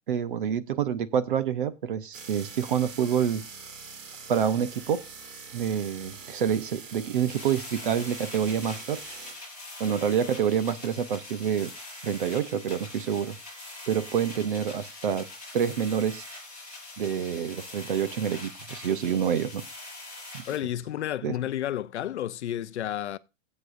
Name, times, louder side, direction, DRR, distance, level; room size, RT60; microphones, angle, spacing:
voice 1, 0.1-3.4 4.3-5.0 5.5-9.0 9.8-11.7 12.0-13.4 13.9-15.3 15.5-16.2 17.0-19.6 20.3-20.4 21.2-21.3, right 8 dB, 45° right, 0.8 m, -27 dB
sound 1, 2.1-9.3, right 5 dB, 90° right, 2.6 m, -44 dB
sound 2, 7.3-20.6, left 2 dB, 5° right, 4.5 m, -43 dB
voice 2, 20.5-23.2, left 11 dB, 60° left, 0.6 m, -31 dB
18.5 x 8.3 x 2.6 m
hypercardioid pair, 180°, 38 cm